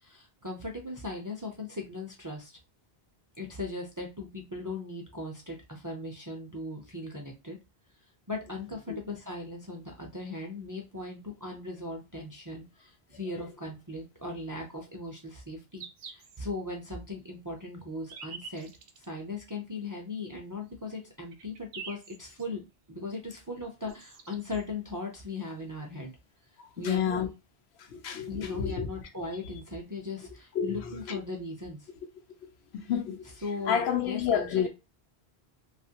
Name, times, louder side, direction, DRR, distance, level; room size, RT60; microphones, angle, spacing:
voice 1, 0.0-2.6 3.4-7.6 8.3-15.8 16.1-18.7 19.0-22.6 22.9-26.1 26.8-27.2 28.3-31.9 33.4-34.7, left 2 dB, 30° right, 0.4 m, -38 dB
sound 1, 14.3-14.5 15.3-15.4 15.8-16.4 16.9-17.0 17.8-19.1 19.9-20.0 20.7-20.8 21.1-22.4 23.6-23.7 23.9-24.6 26.1-26.2 26.4-26.5 27.2-27.3, right 5 dB, 75° right, 0.8 m, -46 dB
voice 2, 26.6-27.3 27.8-28.9 30.5-31.2 32.4-34.7, left 8 dB, 85° left, 0.8 m, -31 dB
2.8 x 2.4 x 2.8 m
omnidirectional pair, 1.0 m